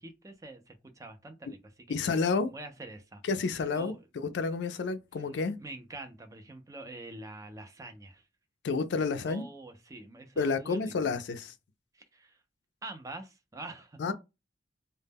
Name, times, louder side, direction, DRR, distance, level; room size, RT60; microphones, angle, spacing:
voice 1, 0.0-2.0 2.5-3.2 3.5-4.0 5.6-8.2 9.3-11.1 11.9-12.4 12.8-14.0, right 2 dB, 20° right, 0.4 m, -46 dB
voice 2, 1.9-2.5 3.2-5.6 8.6-9.4 10.4-11.5 14.0-14.1, left 4 dB, 75° left, 0.4 m, -30 dB
2.1 x 2.0 x 3.4 m
head